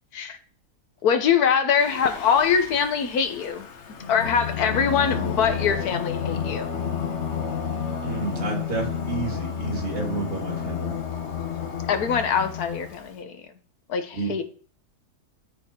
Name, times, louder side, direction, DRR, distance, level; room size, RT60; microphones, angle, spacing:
voice 1, 1.0-3.7 4.1-6.8 11.9-13.3 13.9-14.4, left 7 dB, 75° left, 8 dB, 1.4 m, -23 dB
Singing, 1.8-13.1, left 7 dB, 50° left, 1.1 m, -31 dB
voice 2, 8.0-11.0 14.1-14.3, right 3 dB, 60° right, 1 dB, 2.5 m, -30 dB
12.5 x 4.3 x 4.3 m, 0.43 s
omnidirectional pair, 1.6 m